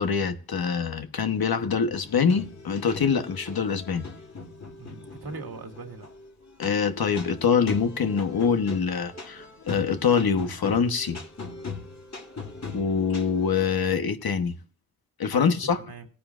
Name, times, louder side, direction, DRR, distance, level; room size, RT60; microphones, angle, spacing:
voice 1, 0.0-4.1 6.6-11.2 12.7-14.6 15.2-15.8, left 6 dB, 70° left, 1.2 m, -24 dB
sound 1, 1.9-13.6, left 4 dB, 45° left, 2.3 m, -40 dB
voice 2, 4.8-6.1 15.3-16.1, right 4 dB, 75° right, 2.0 m, -40 dB
18.5 x 10.0 x 2.5 m
wide cardioid pair, 95°, 37 cm